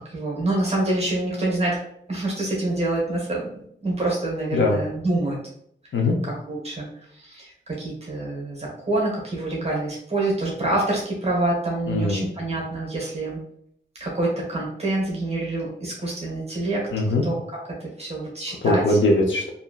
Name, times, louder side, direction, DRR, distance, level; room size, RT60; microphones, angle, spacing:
voice 1, 0.0-1.8 2.1-3.5 3.8-5.4 6.2-6.9 7.2-13.4 14.0-16.9 17.2-19.0, right 2 dB, 30° right, -3 dB, 0.9 m, -26 dB
voice 2, 11.9-12.2 16.9-17.2 18.6-19.5, left 2 dB, 75° left, 0 dB, 0.6 m, -21 dB
2.9 x 2.5 x 2.3 m, 0.69 s
wide cardioid pair, 120°, 20 cm